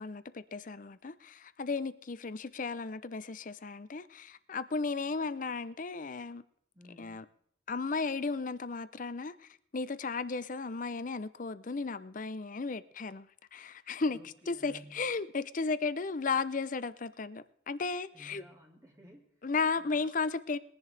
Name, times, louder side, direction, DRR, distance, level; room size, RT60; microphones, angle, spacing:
voice 1, 0.0-6.4 7.0-7.2 7.7-14.2 14.5-18.4 19.4-20.6, left 4 dB, 40° left, 0.5 m, -35 dB
voice 2, 6.7-7.3 14.1-15.0 18.1-19.4 19.8-20.1, right 1 dB, 15° right, 2.2 m, -55 dB
21.5 x 10.5 x 3.4 m
head